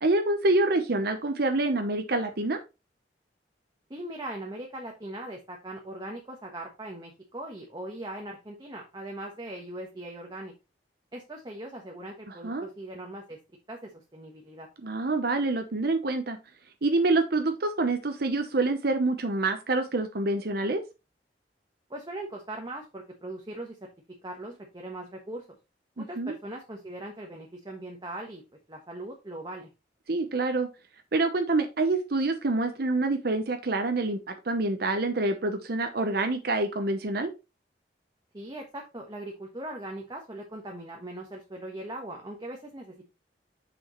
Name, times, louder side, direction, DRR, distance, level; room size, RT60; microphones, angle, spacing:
voice 1, 0.0-2.6 12.4-12.7 14.8-16.4 16.8-20.8 26.0-26.3 30.1-30.7 31.1-37.3, right 2 dB, 60° right, 6 dB, 0.9 m, -26 dB
voice 2, 3.9-10.5 11.1-13.4 13.7-14.7 21.9-23.8 24.2-25.4 26.0-28.4 28.7-29.7 38.3-43.0, right 1 dB, 25° right, 0 dB, 1.2 m, -40 dB
6.5 x 6.1 x 3.1 m, 0.27 s
head